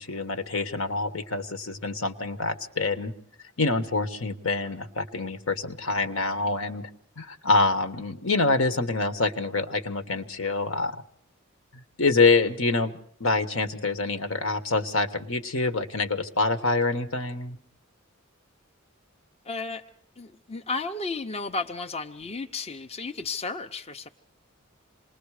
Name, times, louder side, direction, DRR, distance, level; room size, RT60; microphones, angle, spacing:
voice 1, 0.0-3.1 3.6-6.9 7.2-11.0 11.7-12.9 13.2-17.6, left 3 dB, 70° left, 9 dB, 1.4 m, -26 dB
voice 2, 19.4-19.8 20.2-24.1, left 3 dB, 30° left, 5 dB, 0.8 m, -33 dB
27.0 x 20.5 x 4.9 m, 0.63 s
head